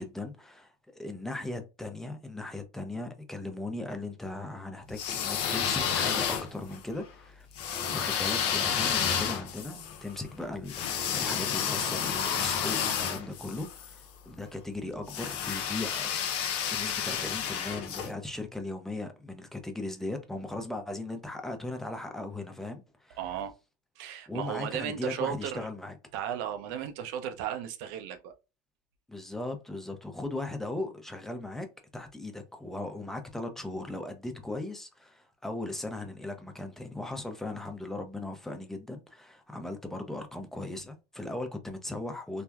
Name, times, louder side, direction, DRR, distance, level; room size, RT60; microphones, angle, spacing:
voice 1, 0.0-7.5 7.8-16.1 16.7-23.2 24.3-26.0 29.1-31.7 31.9-42.4, left 2 dB, 5° left, 0.7 m, -38 dB
sound 1, 4.9-6.8 7.6-13.9 15.1-18.1, left 8 dB, 60° left, 0.6 m, -30 dB
voice 2, 23.2-23.5 24.0-25.7 26.1-28.3, right 9 dB, 65° right, 0.6 m, -35 dB
3.3 x 2.1 x 2.3 m
hypercardioid pair, 80°, 11 cm